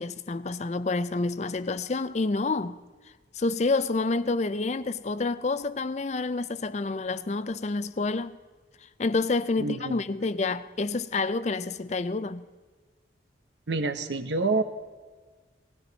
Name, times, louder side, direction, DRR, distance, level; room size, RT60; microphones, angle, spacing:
voice 1, 0.0-2.8 3.3-8.4 9.0-12.4, left 3 dB, 40° left, 0.5 m, -28 dB
voice 2, 9.6-10.0 13.7-14.6, right 3 dB, 75° right, 1.0 m, -27 dB
20.0 x 16.0 x 4.1 m
head